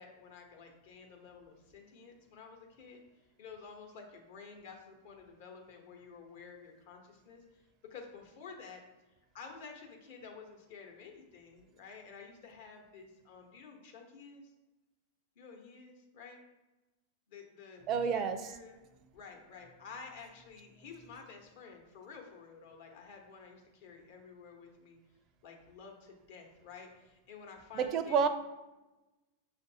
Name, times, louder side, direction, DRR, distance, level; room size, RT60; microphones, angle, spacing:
voice 1, 0.0-3.0 3.4-7.6 7.9-8.8 9.3-14.5 15.4-16.4 17.3-18.8 19.1-25.0 25.4-28.3, left 5 dB, 65° left, 2 dB, 1.0 m, -51 dB
voice 2, 17.9-18.4 27.7-28.3, right 6 dB, 40° right, 9 dB, 0.4 m, -29 dB
6.1 x 2.5 x 2.7 m, 1.1 s
hypercardioid pair, 115°, 0 cm